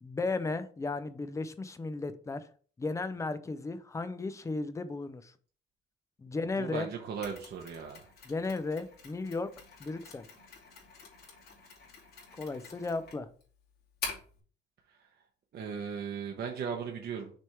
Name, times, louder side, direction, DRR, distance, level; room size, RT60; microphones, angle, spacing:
voice 1, 0.0-2.5 2.8-5.3 6.2-6.9 8.3-9.5 9.8-10.3 12.4-13.3, left 3 dB, 15° left, 11 dB, 0.4 m, -35 dB
voice 2, 6.6-8.0 15.5-17.3, right 6 dB, 55° right, 1 dB, 0.9 m, -37 dB
Mechanisms, 7.2-14.4, left 4 dB, 50° left, 2.5 m, -46 dB
6.3 x 3.5 x 4.4 m, 0.43 s
cardioid pair, 170°, 20 cm